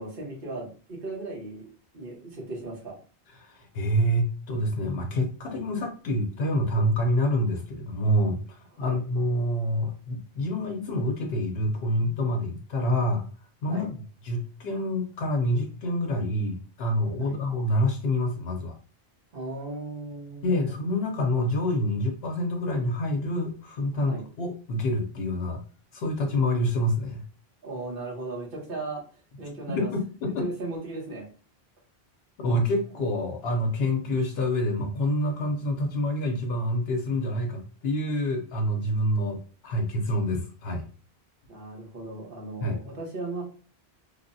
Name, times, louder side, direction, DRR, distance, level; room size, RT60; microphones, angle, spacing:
voice 1, 0.0-1.7 1.9-3.0 8.8-9.0 13.7-13.9 17.2-17.4 19.3-20.7 23.9-24.2 27.6-29.0 29.4-29.9 30.2-31.3 41.5-43.4, right 2 dB, 60° right, -2 dB, 1.2 m, -36 dB
voice 2, 3.4-13.2 13.6-13.9 14.2-18.7 20.4-25.6 25.9-27.2 29.8-30.4 32.4-39.4 39.6-40.8 42.6-42.8, left 1 dB, 75° left, 3 dB, 0.8 m, -27 dB
3.2 x 2.1 x 2.6 m, 0.39 s
omnidirectional pair, 1.1 m